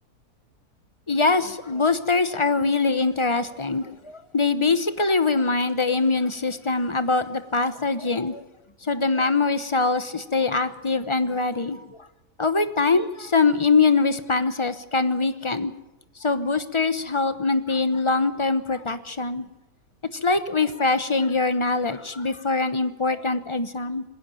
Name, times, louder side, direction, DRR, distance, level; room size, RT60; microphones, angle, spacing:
voice 1, 1.1-8.4 8.8-12.1 12.4-15.7 16.2-19.5 20.1-24.0, left 3 dB, 25° left, 11 dB, 0.8 m, -23 dB
21.0 x 16.5 x 9.0 m, 0.98 s
omnidirectional pair, 1.6 m